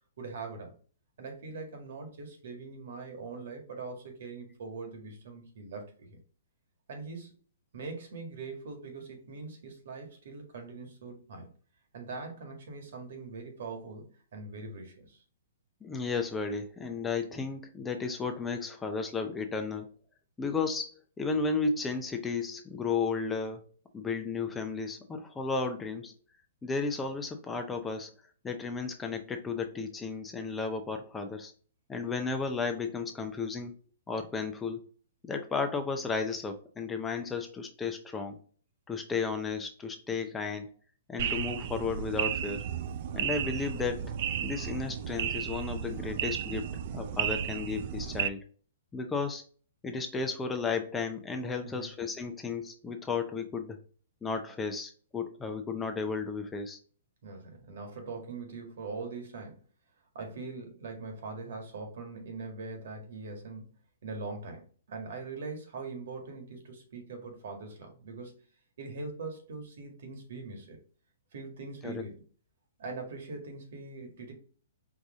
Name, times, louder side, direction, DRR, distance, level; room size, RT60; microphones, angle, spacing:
voice 1, 0.2-0.7 1.2-6.2 6.9-7.3 7.7-11.5 11.9-15.2 51.6-51.9 57.2-59.6 60.1-63.7 64.0-64.6 64.9-68.4 68.8-70.8 71.3-72.2 72.8-74.3, right 3 dB, 65° right, 1.7 m, -42 dB
voice 2, 15.8-19.9 20.4-23.6 23.9-26.1 26.6-28.1 28.4-31.5 31.9-33.8 34.1-34.8 35.2-38.4 38.9-40.7 41.1-42.7 43.1-44.1 44.4-48.4 48.9-49.4 49.8-53.8 54.2-56.8 71.8-72.0, left 4 dB, 10° left, 0.5 m, -33 dB
sound 1, 41.2-48.3, right 9 dB, 50° right, 0.4 m, -33 dB
4.8 x 2.6 x 3.6 m
hypercardioid pair, 140°, 0 cm